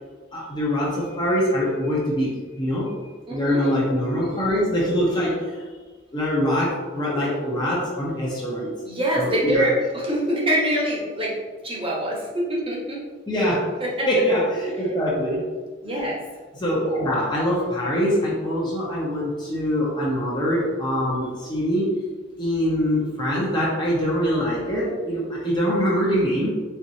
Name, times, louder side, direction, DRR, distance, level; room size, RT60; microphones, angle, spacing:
voice 1, 0.3-2.9 3.3-5.5 6.1-8.8 9.2-9.7 13.3-13.7 14.1-15.5 15.9-16.1 16.5-22.0 22.4-26.5, equal, 20° left, -5 dB, 0.8 m, -23 dB
voice 2, 3.3-3.7 8.8-11.3 11.6-13.0 13.8-14.1 15.8-16.2, equal, 25° right, -4 dB, 1.1 m, -24 dB
4.5 x 3.6 x 2.8 m, 1.4 s
head